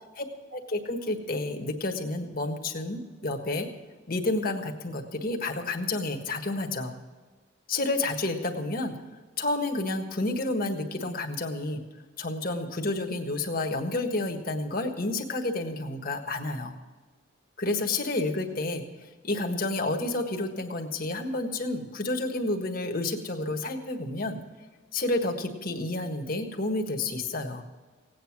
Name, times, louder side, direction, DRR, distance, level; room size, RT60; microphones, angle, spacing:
voice 1, 0.5-3.7 4.1-7.0 7.7-9.0 9.4-11.8 12.2-16.7 17.6-18.8 19.2-24.4 24.9-27.6, left 2 dB, 45° left, 4 dB, 1.5 m, -30 dB
17.5 x 9.2 x 6.1 m, 1.4 s
head